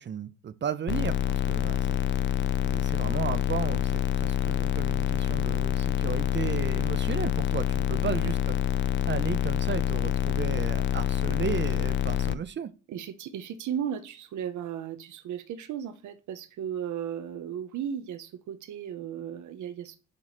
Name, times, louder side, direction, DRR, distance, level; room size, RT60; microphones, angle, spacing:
voice 1, 0.0-2.0 2.6-8.5 9.0-12.7, right 8 dB, 40° right, 0.5 m, -34 dB
sound 1, 0.9-12.3, left 10 dB, 40° left, 0.4 m, -27 dB
voice 2, 12.9-20.0, right 9 dB, 75° right, 0.8 m, -35 dB
7.6 x 3.1 x 4.1 m
cardioid pair, 90°, 30 cm